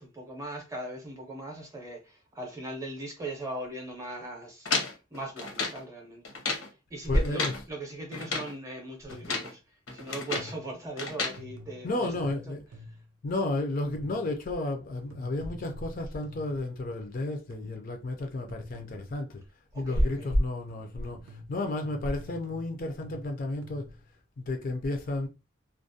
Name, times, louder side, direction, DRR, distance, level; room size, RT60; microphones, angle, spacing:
voice 1, 0.0-6.4 6.7-12.5 12.9-13.0 19.7-20.3, right 1 dB, 15° right, 0.6 m, -40 dB
sound 1, 4.7-5.8 6.2-6.7 7.1-7.6 8.1-8.5 9.1-9.5 9.9-10.6 11.0-11.4, left 4 dB, 80° left, 0.8 m, -32 dB
voice 2, 7.0-7.6 11.8-12.7 13.2-19.4 19.7-23.9 24.4-25.3, left 1 dB, 40° left, 0.4 m, -31 dB
sound 2, 9.1-9.5 10.4-10.8 11.4-13.2 13.9-14.4 15.1-17.2 17.5-18.0 18.5-19.3 20.1-24.1, left 1 dB, 80° right, 0.4 m, -48 dB
2.4 x 2.1 x 2.6 m
head